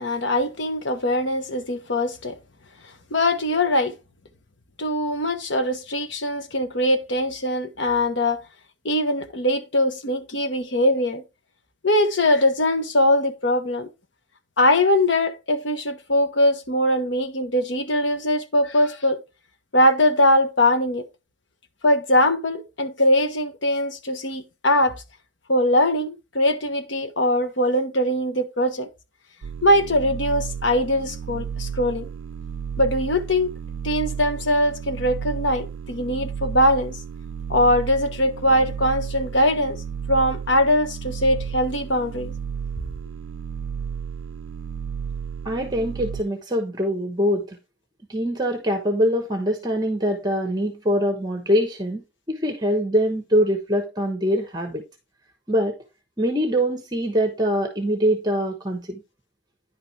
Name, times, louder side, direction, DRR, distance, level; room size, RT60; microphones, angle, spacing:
voice 1, 0.0-2.4 3.1-3.9 4.8-8.4 8.8-11.2 11.8-13.9 14.6-19.2 19.7-21.0 21.8-25.0 25.5-28.9 29.6-32.1 32.8-33.5 33.8-37.0 37.5-39.8 40.1-42.3, left 1 dB, 70° left, 1.2 m, -21 dB
sound 1, 29.4-46.2, right 7 dB, 80° right, 0.4 m, -33 dB
voice 2, 45.4-47.6 48.1-54.8 55.5-55.8 56.2-59.0, equal, 20° right, 1.1 m, -23 dB
10.0 x 5.7 x 3.3 m
head